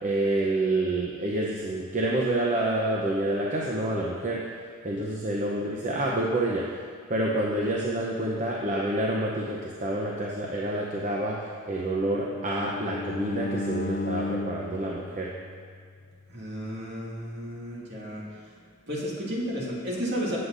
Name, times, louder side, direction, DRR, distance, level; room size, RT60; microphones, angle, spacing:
voice 1, 0.0-4.5 4.8-6.6 7.1-15.3, right 1 dB, 35° right, -3 dB, 0.8 m, -28 dB
Bowed string instrument, 11.9-16.0, left 2 dB, 50° left, 0.4 m, -35 dB
voice 2, 16.3-18.2 18.9-20.4, equal, 55° right, -5 dB, 2.3 m, -32 dB
15.5 x 7.8 x 2.6 m, 2.1 s
head